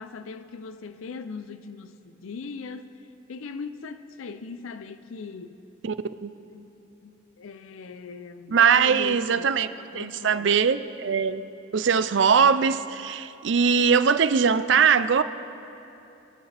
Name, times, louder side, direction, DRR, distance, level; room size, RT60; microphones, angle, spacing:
voice 1, 0.0-2.9 3.3-5.6 6.5-6.7 7.0-9.5 9.9-10.5, left 4 dB, 85° left, 0.5 m, -39 dB
voice 2, 8.5-9.7 9.9-11.5 11.7-15.2, right 6 dB, 65° right, 0.5 m, -21 dB
25.0 x 9.7 x 3.4 m
head